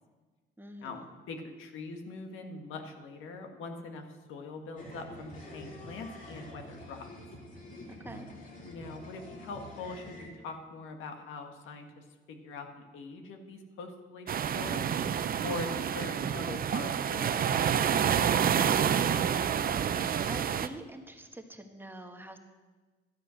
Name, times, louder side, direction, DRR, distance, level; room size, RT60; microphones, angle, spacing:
voice 1, 0.6-1.1 7.9-8.3 20.3-22.4, right 1 dB, 10° right, 4 dB, 1.3 m, -45 dB
voice 2, 1.3-7.1 8.6-14.9 15.4-17.9 18.3-18.9, left 3 dB, 85° left, 4 dB, 1.5 m, -43 dB
sound 1, 4.8-10.3, left 1 dB, 45° left, 3.0 m, -47 dB
sound 2, 14.3-20.7, right 8 dB, 45° right, 0.6 m, -28 dB
12.5 x 8.4 x 6.3 m, 1.3 s
cardioid pair, 90°, 20 cm